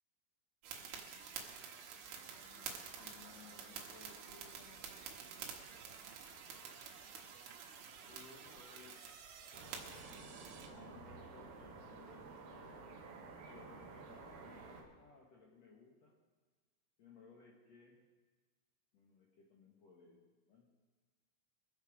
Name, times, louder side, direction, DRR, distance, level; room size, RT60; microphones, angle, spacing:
sound 1, 0.6-10.7, right 7 dB, 80° right, 3.9 m, -50 dB
voice 1, 2.1-5.4 8.1-9.2 10.7-13.2 13.5-16.2 17.0-18.1 18.9-20.8, left 4 dB, 75° left, -1 dB, 1.5 m, -61 dB
sound 2, 9.5-14.8, right 3 dB, 55° right, 2.3 m, -52 dB
24.0 x 8.0 x 5.0 m, 1.4 s
omnidirectional pair, 5.5 m